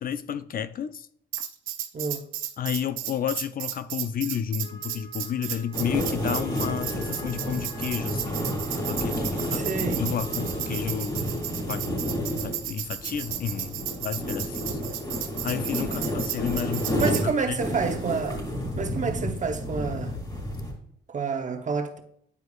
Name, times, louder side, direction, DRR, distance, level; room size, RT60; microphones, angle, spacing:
voice 1, 0.0-1.1 2.6-8.5 8.8-9.6 10.0-11.2 11.7-11.9 12.4-14.8 15.4-17.6, left 8 dB, 45° left, 0.4 m, -31 dB
Tambourine, 1.3-17.3, right 12 dB, 90° right, 0.7 m, -34 dB
voice 2, 1.9-2.3 9.5-10.0 15.9-16.2 17.0-18.4 18.7-20.1 21.1-22.0, right 5 dB, 40° right, 0.9 m, -29 dB
Wind instrument woodwind instrument, 4.6-10.9, right 1 dB, 85° left, 2.0 m, -48 dB
sound 1, 5.7-20.7, equal, 20° left, 2.7 m, -31 dB
9.6 x 4.6 x 2.4 m
cardioid pair, 90°, 20 cm